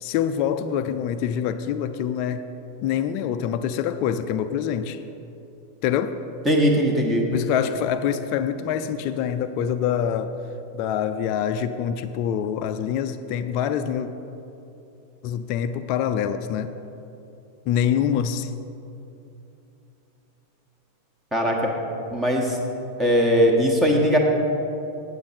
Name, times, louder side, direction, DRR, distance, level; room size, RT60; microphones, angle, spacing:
voice 1, 0.0-2.4 2.8-5.0 5.8-6.2 7.3-10.3 10.7-14.1 15.2-16.7 17.7-18.5, left 9 dB, 40° left, 9 dB, 0.4 m, -25 dB
voice 2, 6.4-7.2 21.3-21.6 22.1-22.6 23.0-24.2, equal, 10° right, 1 dB, 1.3 m, -19 dB
8.5 x 8.4 x 4.3 m, 2.8 s
figure-of-eight pair, 90°, 0 cm